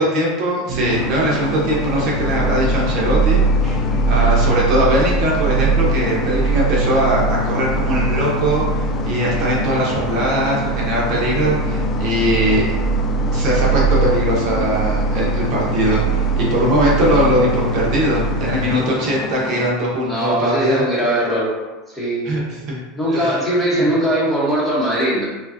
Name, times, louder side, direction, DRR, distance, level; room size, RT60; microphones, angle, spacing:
voice 1, 0.0-12.6 13.3-20.9 22.2-22.8 23.1-23.4 23.8-23.9, equal, 50° right, -4 dB, 1.1 m, -20 dB
sound 1, 0.7-18.6, right 3 dB, 65° right, 0.7 m, -21 dB
sound 2, 0.9-19.7, left 4 dB, 30° left, 0.4 m, -29 dB
voice 2, 3.6-4.0 20.0-21.5 21.9-22.2 22.9-25.2, right 1 dB, 5° left, -7 dB, 1.1 m, -20 dB
5.1 x 2.3 x 2.7 m, 1.1 s
supercardioid pair, 145°, 0 cm